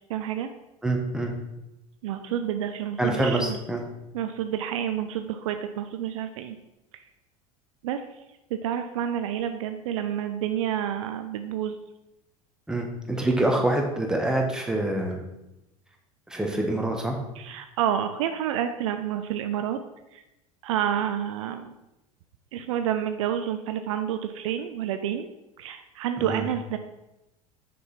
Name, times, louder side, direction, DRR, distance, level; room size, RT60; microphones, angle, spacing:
voice 1, 0.1-0.5 2.0-3.6 4.1-6.6 7.8-8.0 8.5-11.8 17.4-19.8 20.1-20.2 20.6-21.7 22.5-25.3 25.6-26.8, right 10 dB, 60° right, 8 dB, 0.5 m, -29 dB
voice 2, 0.8-1.3 3.0-3.8 12.7-15.2 16.3-17.2 26.2-26.4, right 1 dB, 5° right, 1 dB, 1.2 m, -26 dB
6.4 x 5.2 x 4.3 m, 0.94 s
figure-of-eight pair, 75°, 19 cm